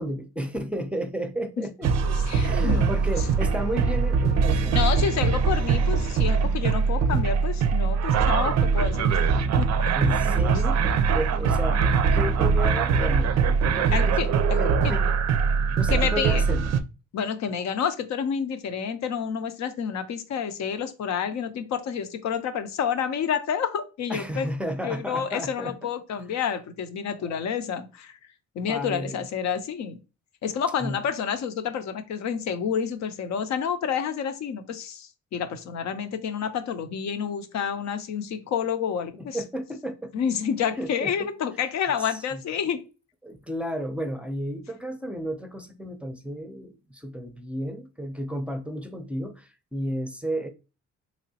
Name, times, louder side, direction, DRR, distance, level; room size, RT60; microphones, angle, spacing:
voice 1, 0.0-1.9 2.4-4.9 10.0-11.8 12.1-13.3 13.8-15.1 15.4-16.6 24.1-25.8 27.2-27.4 28.7-29.2 30.8-31.0 39.2-40.1 40.8-41.1 42.1-42.4 43.2-50.5, equal, 5° right, 0.5 m, -33 dB
sound 1, 1.8-16.8, right 5 dB, 60° right, 0.5 m, -22 dB
voice 2, 2.0-3.0 4.7-9.3 9.6-9.9 13.9-15.0 15.9-16.4 17.1-24.5 24.8-28.2 28.5-30.0 30.4-39.4 40.1-42.8, left 7 dB, 65° left, 0.6 m, -29 dB
3.4 x 3.0 x 2.8 m
cardioid pair, 90°, 30 cm